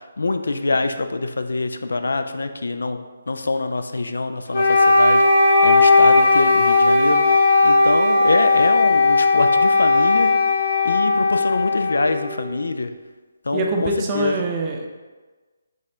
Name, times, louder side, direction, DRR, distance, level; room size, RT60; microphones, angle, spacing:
voice 1, 0.0-5.2 5.6-10.3 10.8-12.9 13.4-14.4, left 3 dB, 70° left, 8 dB, 0.3 m, -25 dB
Wind instrument woodwind instrument, 4.5-12.6, left 3 dB, 45° left, 1.2 m, -16 dB
voice 2, 13.5-14.9, right 2 dB, 25° right, 0 dB, 0.6 m, -24 dB
6.5 x 2.5 x 3.3 m, 1.3 s
figure-of-eight pair, 145°, 0 cm